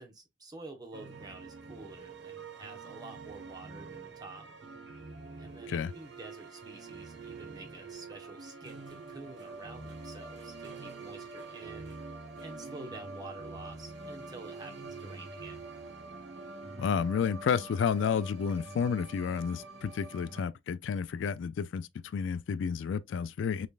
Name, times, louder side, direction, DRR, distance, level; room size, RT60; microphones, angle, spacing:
voice 1, 0.0-4.5 5.4-12.0 12.4-15.7, right 2 dB, 20° right, 1.1 m, -49 dB
sound 1, 0.9-20.4, right 3 dB, 65° right, 1.1 m, -45 dB
voice 2, 16.8-23.7, left 6 dB, 70° left, 0.3 m, -31 dB
5.1 x 3.3 x 2.4 m
head